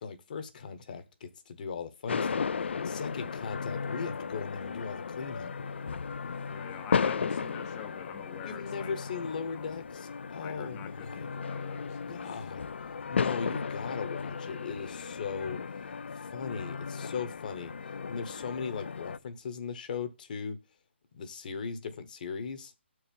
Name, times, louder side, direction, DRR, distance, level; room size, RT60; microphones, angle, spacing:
voice 1, 0.0-2.5 2.8-5.5 8.4-11.3 12.1-12.7 13.1-15.6 16.1-17.7 18.1-20.6 21.1-22.7, left 5 dB, 45° left, 1.0 m, -38 dB
sound 1, 2.1-19.2, left 5 dB, 65° left, 0.4 m, -35 dB
voice 2, 6.5-8.9 9.4-9.9 10.4-12.5 13.0-13.1, left 10 dB, 15° left, 0.6 m, -47 dB
6.5 x 4.7 x 5.2 m
hypercardioid pair, 155°, 7 cm